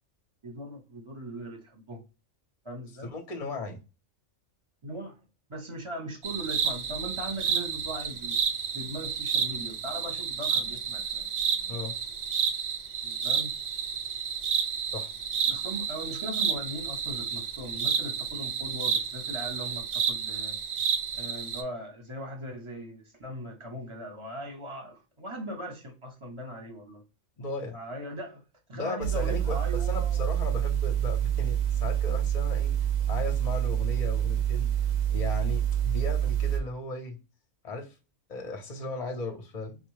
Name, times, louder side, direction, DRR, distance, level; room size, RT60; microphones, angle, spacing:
voice 1, 0.4-2.0 2.6-3.1 4.8-5.2 5.5-8.4 8.7-11.2 13.0-13.5 15.4-20.6 21.1-27.0 27.7-28.4 28.7-30.3, right 1 dB, 25° right, 0.8 m, -39 dB
voice 2, 3.0-3.8 11.7-11.9 14.9-15.1 27.4-27.8 28.7-32.7 33.1-34.7 35.1-37.2 37.6-38.0 38.3-39.8, left 3 dB, 40° left, 0.6 m, -36 dB
sound 1, 6.2-21.6, right 7 dB, 65° right, 0.8 m, -30 dB
sound 2, 29.0-36.6, right 10 dB, 85° right, 1.0 m, -27 dB
4.0 x 2.1 x 3.1 m
omnidirectional pair, 1.4 m